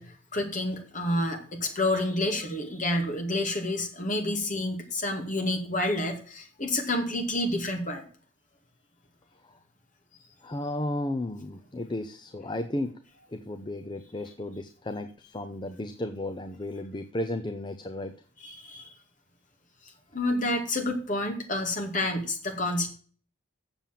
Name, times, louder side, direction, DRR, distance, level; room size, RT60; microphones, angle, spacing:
voice 1, 0.0-8.0 18.4-18.9 20.1-22.9, left 1 dB, 40° left, 3 dB, 2.2 m, -29 dB
voice 2, 10.4-13.0 13.3-18.2, left 1 dB, 25° left, 8 dB, 0.5 m, -34 dB
7.4 x 7.0 x 7.4 m, 0.44 s
head